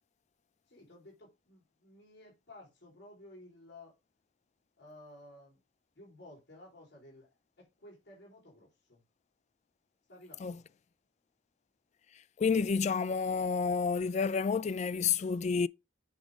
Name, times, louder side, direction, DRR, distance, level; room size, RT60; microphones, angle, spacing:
voice 1, 0.7-3.9 4.8-5.6 6.0-7.3 7.6-9.0 10.1-10.6, left 1 dB, 65° left, 3.7 m, -54 dB
voice 2, 12.4-15.7, left 5 dB, 40° left, 0.3 m, -29 dB
8.2 x 3.7 x 4.9 m
head